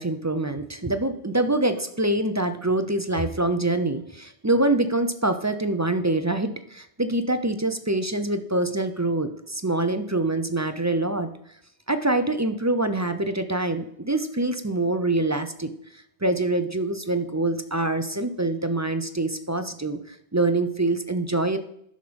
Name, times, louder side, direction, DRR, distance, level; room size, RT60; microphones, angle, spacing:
voice 1, 0.0-11.3 11.9-15.7 16.2-21.6, right 2 dB, 20° right, 9 dB, 0.5 m, -25 dB
10.5 x 6.6 x 5.2 m, 0.71 s
omnidirectional pair, 1.1 m